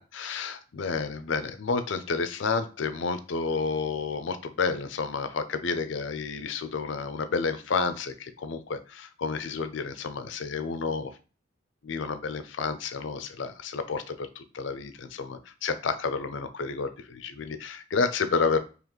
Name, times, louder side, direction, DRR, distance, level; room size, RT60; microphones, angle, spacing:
voice 1, 0.1-11.2 11.8-18.6, left 4 dB, 65° left, 10 dB, 0.5 m, -30 dB
4.0 x 3.0 x 3.1 m, 0.35 s
head